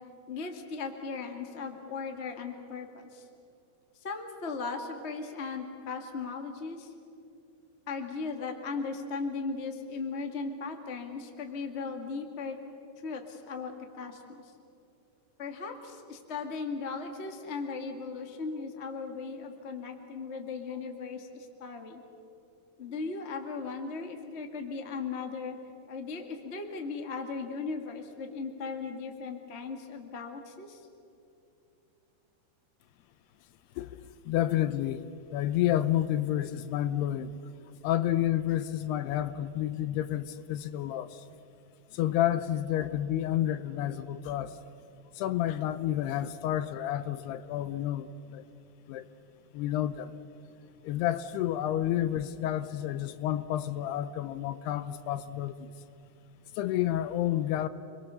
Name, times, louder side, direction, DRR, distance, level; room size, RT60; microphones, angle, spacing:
voice 1, 0.3-3.2 4.0-6.9 7.9-12.6 13.0-14.5 15.4-22.0 22.8-25.6 25.9-30.8, left 4 dB, 40° left, 0.9 m, -37 dB
voice 2, 33.8-37.4 37.8-41.2 41.9-44.6 45.2-48.4 48.9-49.1 49.5-50.1 50.8-55.7 56.6-57.7, left 12 dB, 80° left, 2.7 m, -30 dB
29.0 x 22.0 x 6.9 m
omnidirectional pair, 4.8 m